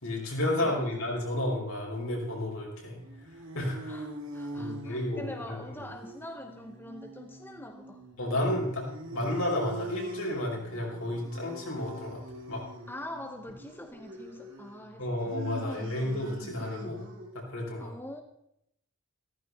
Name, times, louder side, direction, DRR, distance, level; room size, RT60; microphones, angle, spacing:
voice 1, 0.0-3.0 3.5-4.0 4.5-5.8 8.2-12.2 12.5-12.6 15.0-17.0 17.3-17.9, left 1 dB, 70° left, -2 dB, 5.4 m, -32 dB
voice 2, 0.6-1.4 3.9-8.1 12.9-15.9 17.8-18.2, left 1 dB, 10° left, 5 dB, 0.8 m, -44 dB
sound 1, 2.9-17.4, right 2 dB, 60° right, 2.7 m, -44 dB
15.5 x 14.0 x 4.2 m, 0.78 s
head